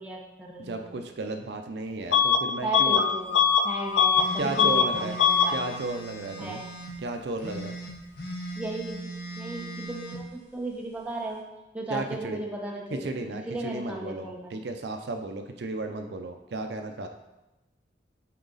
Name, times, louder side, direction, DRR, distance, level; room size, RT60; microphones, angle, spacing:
voice 1, 0.0-0.9 2.6-5.7 6.4-6.7 8.6-9.0 9.4-11.4 11.7-13.1 13.5-14.7, right 1 dB, 10° right, -2 dB, 0.9 m, -35 dB
voice 2, 0.6-3.0 4.4-5.2 5.5-6.6 7.0-7.8 11.9-12.4 12.9-17.1, right 2 dB, 65° right, 5 dB, 0.5 m, -34 dB
Bus / Alarm, 2.1-2.4 2.7-4.3 4.6-4.9 5.2-5.5, left 7 dB, 90° left, 0.5 m, -21 dB
sound 1, 4.1-6.9 7.4-10.2, right 1 dB, 65° left, 1.4 m, -39 dB
8.4 x 4.0 x 4.0 m, 1.0 s
head